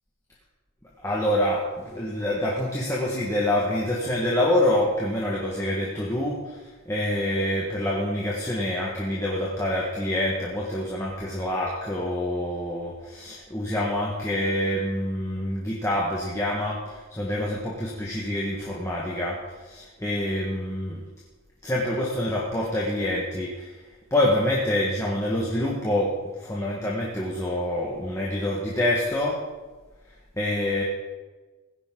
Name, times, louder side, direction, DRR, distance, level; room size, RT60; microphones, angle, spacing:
voice 1, 1.0-21.0 21.6-23.7 24.1-26.1 26.4-29.4 30.4-30.8, left 1 dB, 15° left, -5 dB, 1.6 m, -26 dB
17.0 x 10.5 x 3.9 m, 1.3 s
head